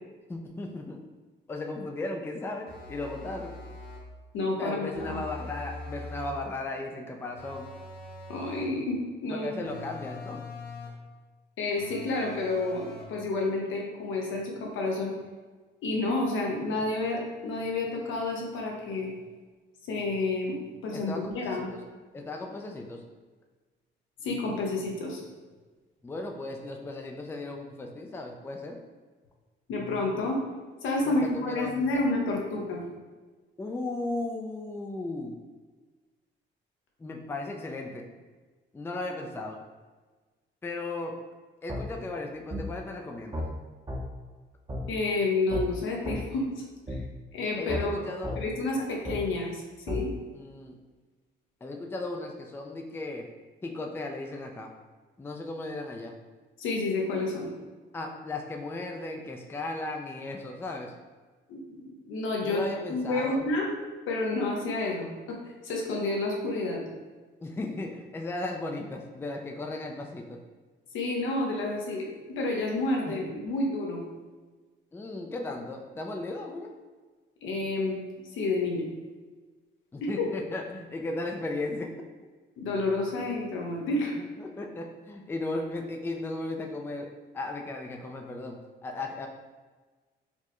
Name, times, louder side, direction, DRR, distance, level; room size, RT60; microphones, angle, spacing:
voice 1, 0.3-1.0 1.5-3.6 4.6-7.7 9.3-10.5 20.9-21.8 22.1-23.0 26.0-28.8 31.0-31.9 33.6-35.4 37.0-38.1 38.7-39.6 40.6-41.2 41.6-43.4 47.6-48.4 48.8-48.9 50.3-50.8 51.6-53.3 53.6-54.7 55.2-56.1 57.9-60.9 62.4-63.4 67.4-70.4 73.1-73.3 74.9-76.7 79.9-82.1 84.2-89.3, left 2 dB, 10° left, 2 dB, 0.3 m, -36 dB
sound 1, 2.7-4.1 4.9-6.4 7.4-8.8 9.6-11.1 11.8-13.2, left 2 dB, 50° left, 0.9 m, -43 dB
voice 2, 4.3-5.2 8.3-9.5 11.6-15.1 15.8-19.1 19.8-21.7 24.2-25.2 29.7-30.4 30.8-32.9 44.9-47.0 47.3-47.9 48.4-50.1 56.6-57.5 61.5-62.6 62.9-63.7 64.1-65.4 65.6-66.8 70.9-74.0 77.4-78.0 78.3-78.9 80.0-80.3 82.6-84.1, left 2 dB, 80° left, -1 dB, 0.8 m, -30 dB
sound 2, 41.7-41.8 42.5-42.6 43.3-43.5 43.9-44.0 44.7-44.8 45.5-45.6 46.0-46.2 46.9-47.0 47.7-47.8 48.2-48.4 49.0-49.2 49.9-50.0, equal, 20° right, 0.7 m, -32 dB
4.3 x 2.1 x 2.9 m, 1.3 s
cardioid pair, 90°, 20 cm